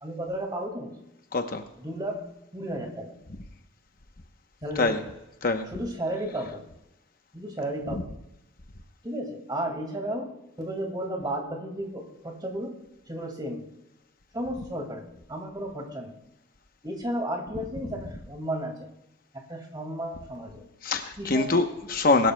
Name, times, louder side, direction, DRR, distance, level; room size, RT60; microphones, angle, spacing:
voice 1, 0.0-0.9 1.8-3.2 4.6-5.0 5.7-6.6 7.3-8.1 9.0-13.7 14.3-16.2 16.8-18.9 19.5-20.6 21.2-21.5, right 1 dB, 20° right, 3 dB, 2.0 m, -33 dB
voice 2, 1.3-1.6 4.8-5.0 5.4-5.7 7.9-8.0 20.8-22.3, left 3 dB, 45° left, 6 dB, 0.9 m, -24 dB
21.5 x 12.0 x 2.2 m, 0.91 s
head